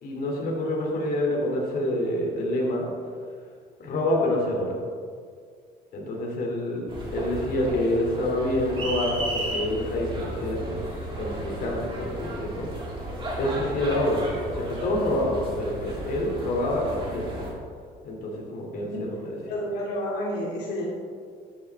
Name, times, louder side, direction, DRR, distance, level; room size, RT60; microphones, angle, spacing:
voice 1, 0.0-2.9 3.8-4.7 5.9-10.8 11.2-12.7 13.4-14.2 14.5-17.5 18.0-19.3, left 1 dB, 60° left, -2 dB, 3.0 m, -27 dB
sound 1, 6.9-17.5, right 1 dB, 30° right, 3.0 m, -34 dB
voice 2, 19.5-20.8, equal, 85° left, -4 dB, 2.6 m, -30 dB
13.0 x 9.3 x 3.6 m, 2.1 s
cardioid pair, 110°, 17 cm